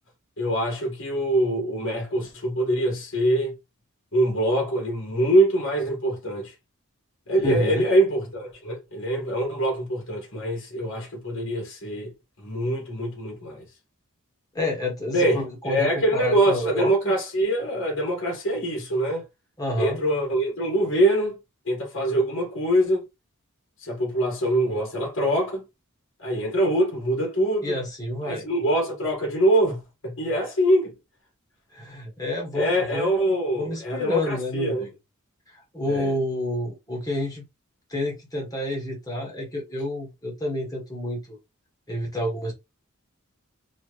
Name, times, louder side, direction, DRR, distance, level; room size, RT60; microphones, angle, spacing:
voice 1, 0.4-3.5 4.1-6.5 7.3-12.1 12.4-13.7 15.1-19.2 19.8-21.4 21.7-23.1 23.8-25.6 26.2-27.8 28.2-30.9 32.5-34.9 35.8-36.1, right 1 dB, 65° left, 1.7 m, -24 dB
voice 2, 7.4-7.8 14.5-17.1 19.6-20.0 27.6-28.4 31.7-33.2 33.6-34.9 35.5-37.5 37.9-41.4 41.9-42.5, left 1 dB, 15° left, 1.4 m, -29 dB
4.2 x 2.5 x 3.2 m
head